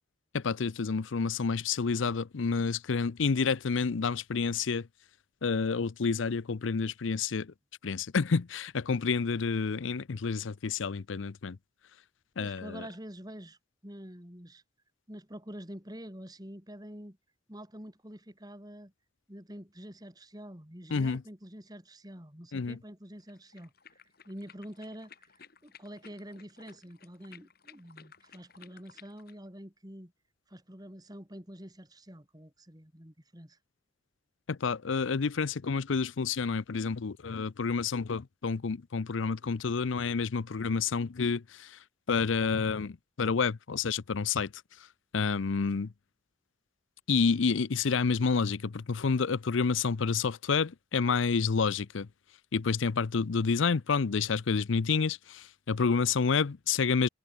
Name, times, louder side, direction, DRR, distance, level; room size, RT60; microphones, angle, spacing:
voice 1, 0.3-4.9 5.4-7.5 7.8-11.6 12.4-12.8 20.9-21.2 22.5-22.8 34.5-41.8 42.1-44.5 45.1-45.9 47.1-52.1 52.5-57.1, left 5 dB, 80° left, 0.6 m, -29 dB
voice 2, 12.4-13.6 13.8-14.6 15.1-17.2 17.5-18.9 19.3-23.7 24.2-25.3 25.6-30.1 30.5-33.6, equal, 20° right, 4.5 m, -46 dB
sound 1, 23.2-29.4, left 7 dB, 50° left, 2.3 m, -57 dB
head